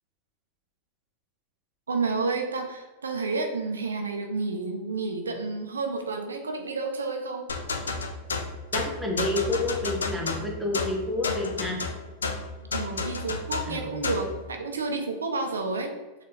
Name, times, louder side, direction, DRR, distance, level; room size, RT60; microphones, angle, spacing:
voice 1, 1.9-7.5 12.7-15.9, right 3 dB, 80° right, 4 dB, 0.4 m, -30 dB
sound 1, 7.5-14.3, left 4 dB, 80° left, 0.4 m, -31 dB
voice 2, 8.7-11.8 13.6-14.0, left 2 dB, 5° right, -1 dB, 1.0 m, -29 dB
4.1 x 2.5 x 3.1 m, 1.2 s
figure-of-eight pair, 90°, 0 cm